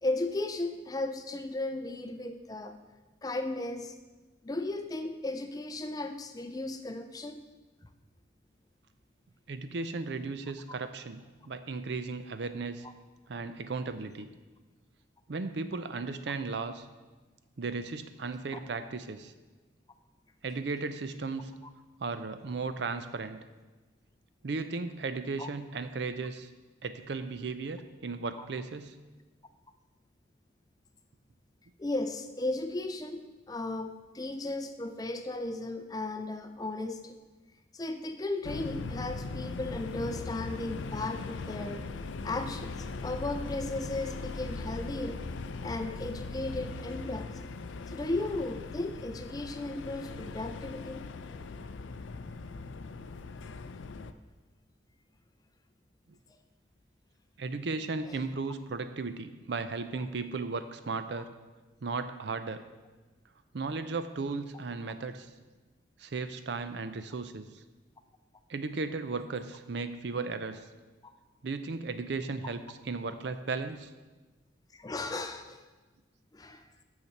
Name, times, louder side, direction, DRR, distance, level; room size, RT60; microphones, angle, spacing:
voice 1, 0.0-2.8 3.2-4.0 4.4-7.4 25.4-25.5 28.4-28.5 31.8-37.2 37.7-41.9 42.2-45.2 45.6-47.3 47.9-51.0 58.1-58.2 74.7-75.6 76.3-76.6, left 2 dB, 20° left, 8 dB, 0.4 m, -35 dB
voice 2, 9.5-11.2 11.5-12.8 13.3-14.3 15.3-16.9 17.6-19.3 20.4-21.5 22.0-23.4 24.4-26.5 26.8-28.9 57.4-61.3 61.8-62.6 63.5-65.3 66.0-67.6 68.5-70.6 71.4-73.9, right 4 dB, 60° right, 10 dB, 0.5 m, -35 dB
sound 1, 38.4-54.1, left 3 dB, 80° left, 0.4 m, -40 dB
6.9 x 6.6 x 5.8 m, 1.2 s
head